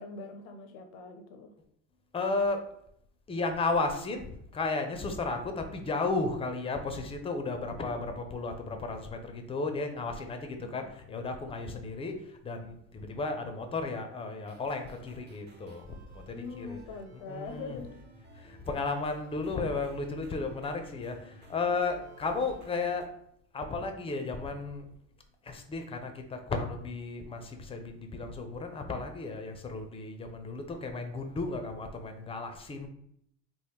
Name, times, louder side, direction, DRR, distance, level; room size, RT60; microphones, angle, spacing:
voice 1, 0.0-1.5 10.6-10.9 16.3-18.0, left 4 dB, 80° left, 6 dB, 0.5 m, -43 dB
voice 2, 2.1-2.6 3.3-16.8 17.3-17.8 18.4-23.1 23.5-24.9 25.4-32.9, left 3 dB, 15° left, 6 dB, 0.4 m, -34 dB
sound 1, 14.4-23.0, right 1 dB, 25° right, 0.7 m, -54 dB
3.0 x 2.0 x 3.4 m, 0.72 s
supercardioid pair, 85°, 38 cm